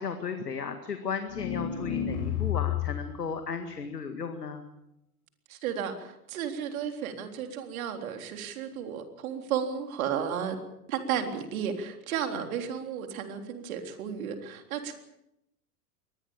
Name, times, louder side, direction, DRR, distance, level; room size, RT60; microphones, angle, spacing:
voice 1, 0.0-4.6, left 5 dB, 85° left, 7 dB, 2.1 m, -35 dB
sound 1, 1.3-3.1, left 10 dB, 65° left, 6.3 m, -30 dB
voice 2, 5.5-10.6 10.9-14.9, right 8 dB, 60° right, 6 dB, 3.8 m, -33 dB
23.5 x 19.5 x 7.3 m, 0.84 s
figure-of-eight pair, 95°, 46 cm